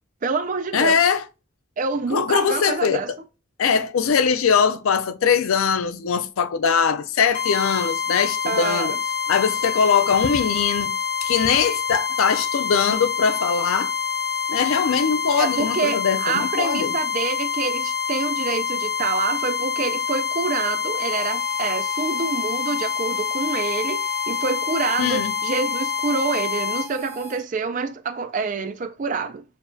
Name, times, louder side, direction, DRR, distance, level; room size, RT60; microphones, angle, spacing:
voice 1, 0.2-1.0 1.8-3.1 8.5-9.0 15.4-29.4, right 4 dB, 35° right, 0.4 m, -27 dB
voice 2, 0.7-1.3 2.1-3.2 3.6-8.9 9.3-13.9 14.5-16.9 25.0-25.3, left 6 dB, 75° left, 0.4 m, -21 dB
sound 1, 7.3-26.9, left 6 dB, 50° left, 0.9 m, -26 dB
Harmonica, 21.1-27.4, right 5 dB, 5° right, 0.7 m, -42 dB
6.6 x 2.3 x 2.6 m
head